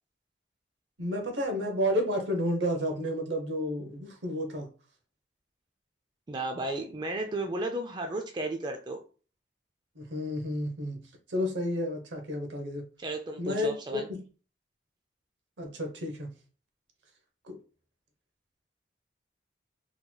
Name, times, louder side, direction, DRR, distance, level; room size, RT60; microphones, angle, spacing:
voice 1, 1.0-4.7 10.0-11.0 11.3-12.8 13.4-14.2 15.6-16.3 17.5-17.6, equal, 85° right, 0.9 m, -31 dB
voice 2, 6.3-9.0 13.0-14.1, right 2 dB, 25° right, 0.3 m, -34 dB
3.9 x 3.0 x 2.2 m
head